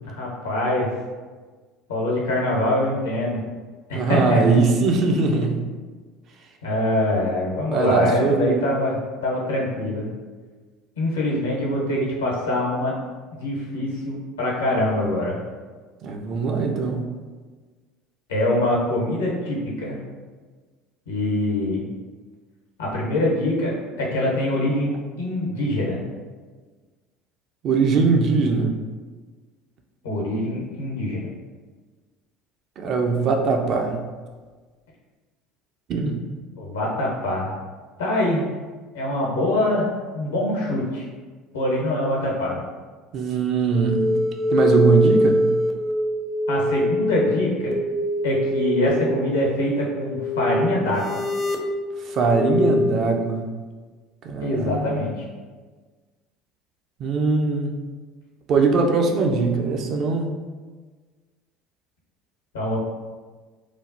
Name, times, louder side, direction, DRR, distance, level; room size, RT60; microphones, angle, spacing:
voice 1, 0.0-0.9 1.9-3.4 3.9-4.6 6.6-9.0 9.2-10.1 11.0-12.9 13.3-15.4 18.3-20.0 21.1-21.9 22.8-24.9 25.2-26.0 30.0-31.2 36.6-37.5 38.0-38.4 38.9-41.1 41.5-42.6 46.5-47.8 48.2-51.2 54.4-55.2 62.5-62.8, left 1 dB, 85° left, -3 dB, 0.7 m, -24 dB
voice 2, 3.9-5.6 7.7-8.7 16.0-17.1 27.6-28.7 32.8-34.0 35.9-36.2 43.1-44.2 44.5-45.5 52.1-53.5 54.2-54.9 57.0-57.7 58.5-60.3, right 4 dB, 50° right, 3 dB, 0.4 m, -21 dB
sound 1, 43.7-52.9, left 1 dB, 30° left, 0.4 m, -24 dB
3.1 x 2.0 x 2.6 m, 1.4 s
hypercardioid pair, 70°, 0 cm